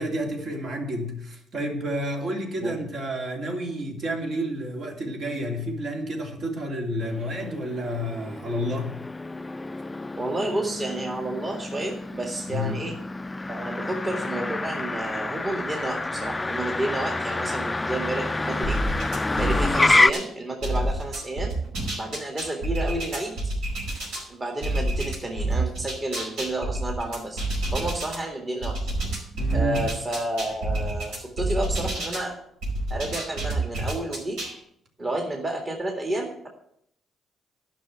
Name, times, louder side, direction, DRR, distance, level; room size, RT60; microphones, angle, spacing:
voice 1, 0.0-8.9 12.5-12.7 29.3-29.8, equal, 60° right, 0 dB, 2.9 m, -30 dB
Motor vehicle (road), 7.0-20.1, left 2 dB, 15° left, 0.3 m, -28 dB
voice 2, 10.1-12.9 13.5-18.8 19.4-21.5 21.9-23.4 24.3-27.4 27.7-28.8 29.5-32.3 32.9-34.4 35.0-36.5, right 2 dB, 30° right, 1 dB, 2.0 m, -30 dB
sound 1, 18.6-20.3 20.6-24.2 24.6-28.2 28.6-32.3 32.6-34.6, right 2 dB, 90° right, 4.9 m, -28 dB
11.0 x 6.0 x 7.9 m, 0.71 s
cardioid pair, 90°, 0 cm